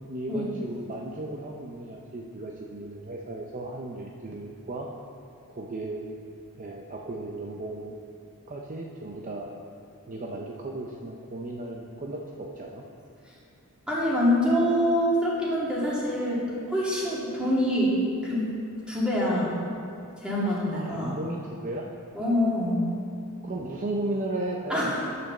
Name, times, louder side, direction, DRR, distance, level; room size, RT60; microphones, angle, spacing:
voice 1, 0.1-4.9 5.5-6.1 6.6-8.0 8.5-9.5 10.1-12.8 20.7-21.9 23.4-25.1, right 2 dB, 35° right, -1 dB, 0.7 m, -35 dB
voice 2, 13.9-18.0 18.2-18.5 18.9-19.6 20.2-21.2 22.1-22.9 24.7-24.9, equal, 5° right, -7 dB, 2.5 m, -25 dB
9.0 x 6.1 x 7.2 m, 2.6 s
head